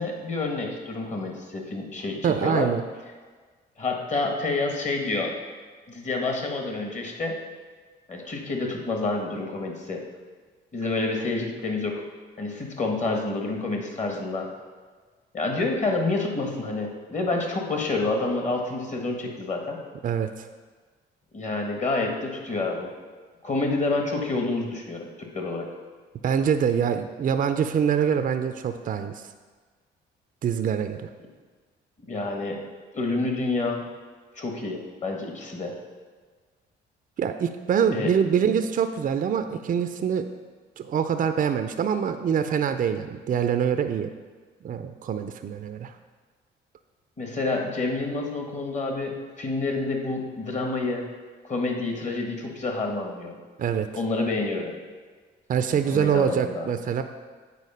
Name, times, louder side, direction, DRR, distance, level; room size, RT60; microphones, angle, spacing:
voice 1, 0.0-2.7 3.8-5.3 5.9-7.4 8.1-10.0 10.7-12.0 12.4-14.5 15.3-19.8 21.3-22.9 23.4-25.7 32.1-32.6 32.9-33.8 34.4-35.8 37.9-38.1 47.2-51.0 51.4-53.4 53.9-54.7 55.7-56.7, left 3 dB, 35° left, 2 dB, 1.5 m, -28 dB
voice 2, 2.2-2.8 20.0-20.5 26.2-29.2 30.4-31.1 37.2-40.3 40.8-44.1 44.6-45.9 53.6-53.9 55.5-57.0, right 7 dB, 45° right, 8 dB, 0.5 m, -25 dB
8.3 x 4.3 x 5.5 m, 1.5 s
cardioid pair, 90°, 20 cm